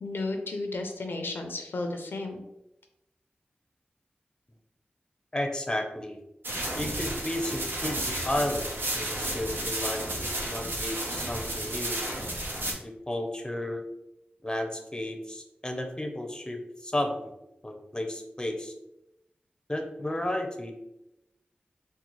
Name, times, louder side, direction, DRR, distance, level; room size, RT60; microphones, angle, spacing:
voice 1, 0.0-2.4, left 2 dB, 85° left, 4 dB, 0.4 m, -33 dB
voice 2, 5.3-6.2 6.8-12.0 12.8-13.8 14.4-17.2 17.6-18.7 19.7-20.7, left 1 dB, 20° left, 4 dB, 0.5 m, -33 dB
sound 1, 6.4-12.7, right 1 dB, 75° right, 0.8 m, -32 dB
3.9 x 2.0 x 3.0 m, 0.88 s
cardioid pair, 45°, 4 cm